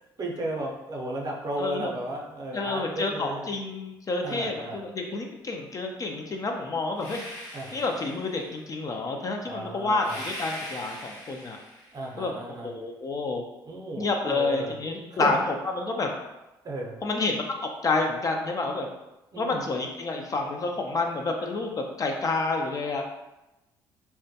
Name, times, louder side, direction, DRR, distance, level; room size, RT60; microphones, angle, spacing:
voice 1, 0.2-3.5 4.2-4.8 7.5-7.9 9.5-10.2 11.9-12.7 13.6-14.8 15.1-15.4 16.6-17.0 19.3-19.7, right 1 dB, 40° right, -1 dB, 0.6 m, -34 dB
voice 2, 1.6-1.9 2.5-7.2 7.7-11.6 12.2-13.4 14.0-16.1 17.0-18.9 19.4-23.0, left 3 dB, 35° left, 2 dB, 0.4 m, -29 dB
sound 1, 6.9-8.6 10.0-12.1, left 1 dB, 80° left, 0.8 m, -41 dB
2.2 x 2.1 x 2.7 m, 0.96 s
supercardioid pair, 65°, 10 cm